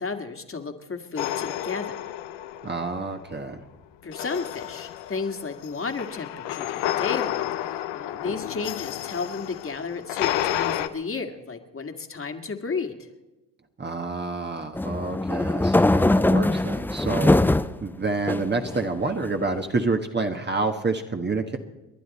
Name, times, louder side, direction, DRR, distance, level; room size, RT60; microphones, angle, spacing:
voice 1, 0.0-2.1 4.0-13.1, left 4 dB, 30° left, 5 dB, 2.0 m, -33 dB
sound 1, 1.2-3.2 4.1-10.9, left 12 dB, 65° left, 1.0 m, -31 dB
voice 2, 2.6-3.6 13.8-17.4 17.8-21.6, right 3 dB, 25° right, 4 dB, 1.4 m, -28 dB
sound 2, 14.7-17.8 18.3-19.1, left 2 dB, 5° left, 0.5 m, -21 dB
30.0 x 11.0 x 4.2 m, 1.0 s
hypercardioid pair, 65°, 45 cm